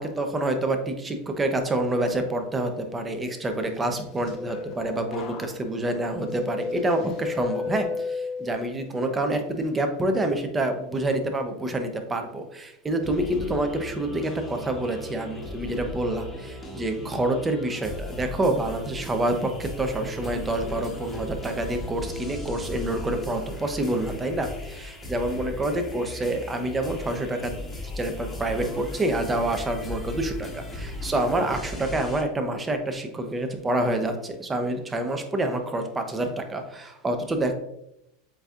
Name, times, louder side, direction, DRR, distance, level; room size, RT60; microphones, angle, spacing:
voice 1, 0.0-27.6 27.9-37.5, right 1 dB, 15° right, 6 dB, 0.6 m, -27 dB
sound 1, 3.8-8.9 9.3-9.7, left 4 dB, 40° left, 0.6 m, -34 dB
sound 2, 13.0-32.2, left 1 dB, 15° left, 0.9 m, -37 dB
7.7 x 2.7 x 2.4 m, 0.81 s
supercardioid pair, 145°, 0 cm